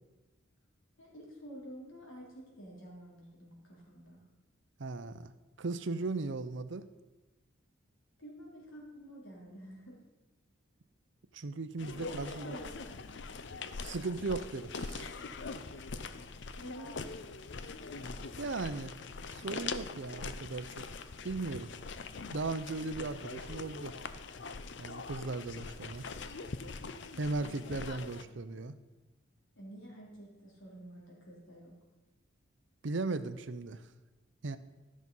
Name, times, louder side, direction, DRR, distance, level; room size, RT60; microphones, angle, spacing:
voice 1, 1.0-4.2 8.2-10.0 12.1-12.9 16.6-17.0 29.6-31.7, equal, 75° left, -3 dB, 3.4 m, -49 dB
voice 2, 4.8-5.3 5.6-6.9 11.3-12.5 13.8-15.1 18.4-18.9 19.3-20.9 21.2-21.7 22.3-24.0 24.8-26.1 27.2-28.7 32.8-33.8 34.4-34.6, right 3 dB, 65° right, 12 dB, 0.6 m, -37 dB
sound 1, 11.8-28.2, left 4 dB, 60° left, 0.5 m, -43 dB
13.0 x 6.2 x 5.5 m, 1.2 s
head